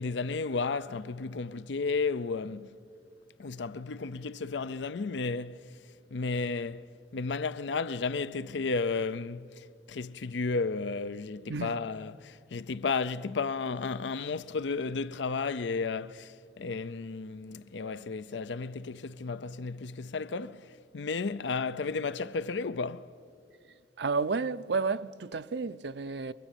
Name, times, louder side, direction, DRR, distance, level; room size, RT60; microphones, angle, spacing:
voice 1, 0.0-2.7 3.4-5.7 6.1-23.1, left 4 dB, 85° left, 0.6 m, -33 dB
voice 2, 24.0-26.3, right 4 dB, 70° right, 0.6 m, -31 dB
25.0 x 23.5 x 9.0 m
head